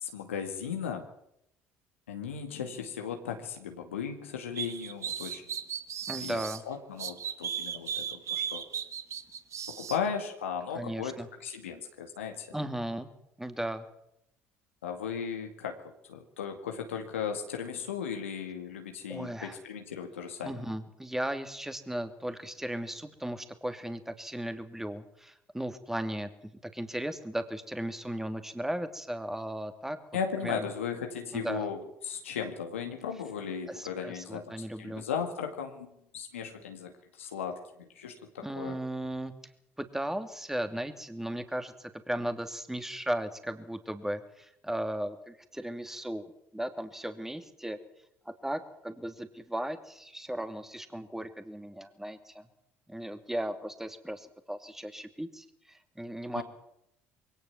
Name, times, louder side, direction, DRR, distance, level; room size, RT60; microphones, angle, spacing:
voice 1, 0.0-1.0 2.1-5.5 6.2-8.6 9.7-11.2 11.4-12.5 14.8-20.6 30.1-35.9 36.1-38.8 56.4-56.5, left 7 dB, 90° left, 4 dB, 2.2 m, -36 dB
sound 1, 4.6-6.6 7.0-10.0, right 8 dB, 50° right, 1.9 m, -36 dB
voice 2, 6.1-6.6 10.7-11.3 12.5-13.1 13.4-13.9 19.1-19.6 20.4-26.3 26.6-30.0 30.4-30.7 31.3-31.7 33.7-35.0 38.4-39.3 39.8-46.2 46.5-47.8 48.2-52.4 52.9-56.4, right 1 dB, 5° right, 8 dB, 2.8 m, -36 dB
22.0 x 18.0 x 7.4 m, 0.77 s
hypercardioid pair, 65°, 7 cm